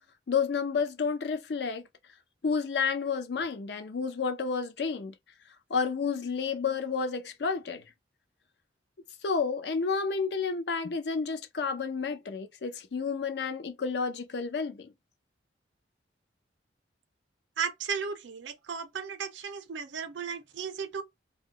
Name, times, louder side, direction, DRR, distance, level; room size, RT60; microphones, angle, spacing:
voice 1, 0.3-1.8 2.4-5.1 5.7-7.8 9.2-14.9, left 5 dB, 60° left, 0.4 m, -30 dB
voice 2, 17.6-21.0, right 6 dB, 75° right, 0.5 m, -35 dB
2.2 x 2.1 x 3.6 m
head